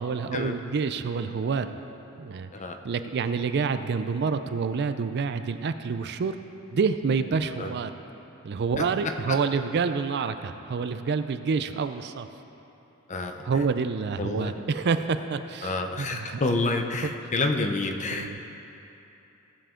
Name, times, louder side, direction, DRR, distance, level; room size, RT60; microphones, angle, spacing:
voice 1, 0.0-1.8 2.2-2.5 2.8-6.3 6.7-7.9 8.4-12.3 13.4-16.4 17.0-17.3 18.1-18.4, right 5 dB, 50° right, 10 dB, 0.4 m, -28 dB
voice 2, 14.2-14.5 15.6-18.4, left 2 dB, 35° left, 5 dB, 0.7 m, -28 dB
16.5 x 7.2 x 3.7 m, 2.9 s
head